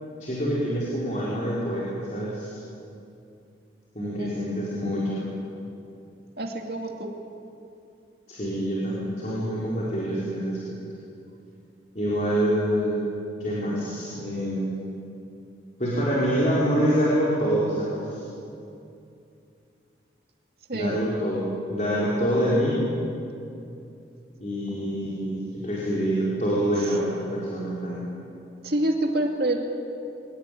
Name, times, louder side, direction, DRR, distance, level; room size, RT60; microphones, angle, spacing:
voice 1, 0.2-2.6 3.9-5.2 8.3-10.6 11.9-13.0 13.4-14.7 15.8-18.2 20.7-22.9 24.4-28.1, equal, 40° left, -7 dB, 4.7 m, -26 dB
voice 2, 4.2-4.8 6.4-7.1 20.7-21.0 28.6-29.6, right 1 dB, 55° right, 2 dB, 2.4 m, -27 dB
24.0 x 19.5 x 9.4 m, 2.7 s
head